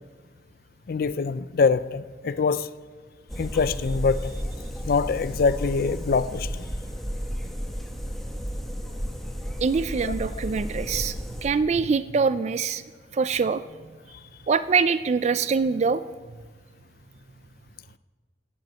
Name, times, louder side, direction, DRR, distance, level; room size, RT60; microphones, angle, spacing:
voice 1, 0.9-2.7 3.4-4.3 4.9-6.6 10.0-10.1, left 5 dB, 55° left, 14 dB, 0.4 m, -24 dB
sound 1, 3.3-11.5, equal, ahead, 1.1 m, -33 dB
voice 2, 9.6-11.2 11.4-12.8 13.1-13.6 14.5-16.0, right 5 dB, 40° right, 14 dB, 0.3 m, -24 dB
10.5 x 7.9 x 9.1 m, 1.5 s
head